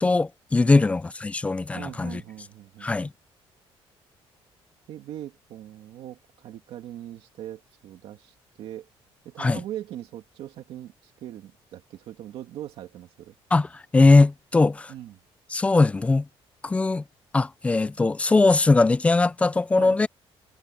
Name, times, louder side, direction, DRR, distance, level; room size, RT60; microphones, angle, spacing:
voice 1, 0.0-2.2 2.8-3.1 9.4-9.6 13.5-14.9 15.5-16.3 16.6-17.0 17.3-20.1, left 3 dB, 15° left, 0.4 m, -20 dB
voice 2, 1.7-2.9 4.9-8.9 9.2-13.3 14.9-15.2 19.7-20.1, right 12 dB, 65° right, 2.3 m, -40 dB
cardioid pair, 170°, 10 cm